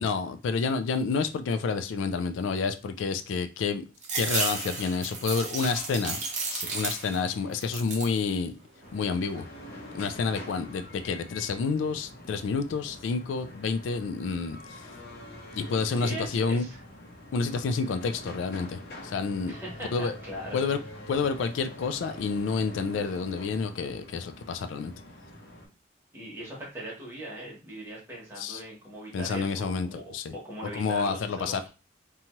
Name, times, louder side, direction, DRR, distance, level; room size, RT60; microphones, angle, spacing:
voice 1, 0.0-3.8 4.1-6.2 6.5-8.5 8.9-9.5 9.9-14.8 15.6-16.7 17.3-19.6 19.9-20.2 20.5-20.8 21.1-24.9 28.4-28.6 29.1-30.3 30.7-31.6, left 5 dB, 80° left, 0.3 m, -29 dB
sound 1, 4.0-7.3 7.6-8.2 8.7-9.4, right 3 dB, 40° right, 0.7 m, -33 dB
sound 2, 8.8-25.7, left 1 dB, 55° left, 0.7 m, -45 dB
voice 2, 15.9-16.8 19.5-20.6 26.1-30.0 30.3-31.7, right 1 dB, 10° right, 1.0 m, -40 dB
2.7 x 2.3 x 2.9 m
head